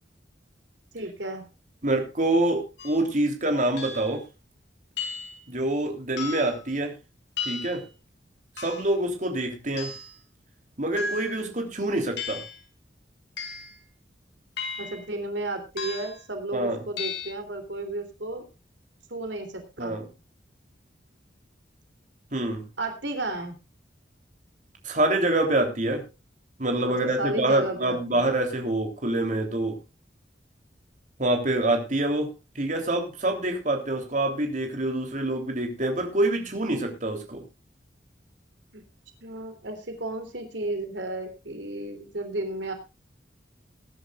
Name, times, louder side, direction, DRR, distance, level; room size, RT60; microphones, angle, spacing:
voice 1, 0.9-1.4 14.8-18.5 19.1-19.9 22.8-23.6 27.0-28.3 38.7-38.8 39.2-42.7, right 2 dB, 85° right, 7 dB, 3.2 m, -33 dB
voice 2, 1.8-4.2 5.5-6.9 7.4-7.8 8.6-9.9 10.8-12.4 16.5-16.8 19.8-20.0 22.3-22.6 24.8-26.0 26.6-29.8 31.2-37.4, right 1 dB, 45° right, 3 dB, 3.3 m, -26 dB
sound 1, 2.8-3.0 3.8-4.2 5.0-5.4 6.2-6.6 7.4-7.8 8.6-9.0 9.8-10.1 11.0-11.5 12.2-12.6 13.4-13.8 14.6-15.1 15.8-16.2 17.0-17.3, left 5 dB, 70° left, 4.0 m, -35 dB
21.0 x 11.0 x 2.4 m, 0.29 s
head